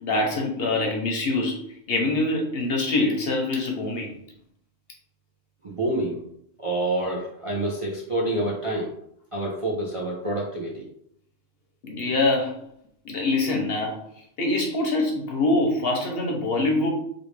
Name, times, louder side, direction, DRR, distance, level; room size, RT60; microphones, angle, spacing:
voice 1, 0.0-1.6 1.9-4.1 11.8-12.6 13.0-14.0 14.4-16.9, left 2 dB, 60° left, 0.8 m, -24 dB
voice 2, 5.6-6.2 6.6-8.9 9.3-10.9, right 1 dB, 40° right, 0.4 m, -27 dB
3.4 x 2.5 x 3.1 m
omnidirectional pair, 1.3 m